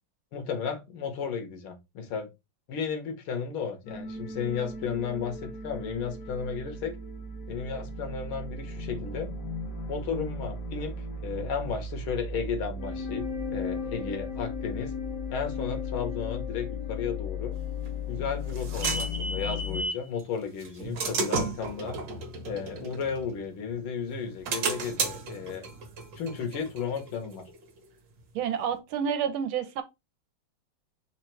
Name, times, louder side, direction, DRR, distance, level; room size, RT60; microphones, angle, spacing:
voice 1, 0.3-2.3 2.7-7.0 7.5-9.3 9.9-14.9 15.3-17.6 18.1-22.0 22.4-25.6 26.2-27.4, left 6 dB, 85° left, 1.9 m, -34 dB
sound 1, 3.9-19.8, left 4 dB, 60° left, 1.3 m, -36 dB
sound 2, 17.9-20.1 20.6-23.7 24.1-27.6, right 4 dB, 65° right, 1.6 m, -33 dB
voice 2, 28.3-29.8, right 8 dB, 85° right, 1.6 m, -29 dB
4.5 x 2.6 x 4.4 m
omnidirectional pair, 2.2 m